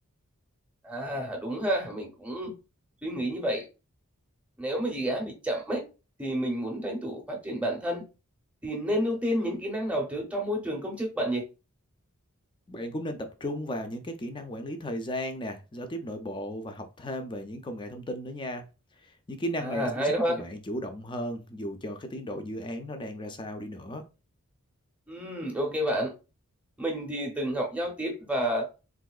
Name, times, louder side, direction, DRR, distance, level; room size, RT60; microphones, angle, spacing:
voice 1, 0.8-2.5 3.0-3.6 4.6-5.8 6.2-8.0 8.6-11.4 19.6-20.4 25.1-26.1 26.8-28.7, equal, 5° right, 0.7 m, -30 dB
voice 2, 12.7-18.6 19.0-24.0, equal, 20° left, 0.4 m, -35 dB
3.7 x 2.6 x 2.3 m
head